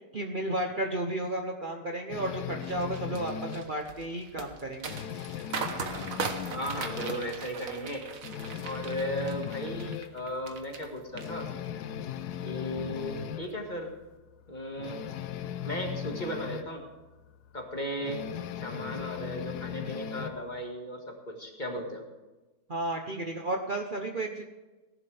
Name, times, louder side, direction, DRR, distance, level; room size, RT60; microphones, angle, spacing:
voice 1, 0.1-4.9 22.7-24.4, right 1 dB, 70° right, 2 dB, 0.4 m, -33 dB
sound 1, 2.1-3.7 4.1-4.3 4.6-7.4 7.7-7.8 8.2-10.1 10.6-10.7 11.1-13.5 14.8-16.7 18.0-20.4, left 8 dB, 70° left, 1.0 m, -38 dB
sound 2, 2.6-10.9 11.2-11.8 12.2-12.5, right 5 dB, 45° right, 1.3 m, -39 dB
voice 2, 6.5-8.1 8.6-11.5 12.4-13.9 14.5-15.0 15.6-16.8 17.5-18.2 18.6-22.0, equal, 20° left, 1 dB, 1.8 m, -36 dB
18.0 x 11.5 x 3.4 m, 1.1 s
omnidirectional pair, 2.4 m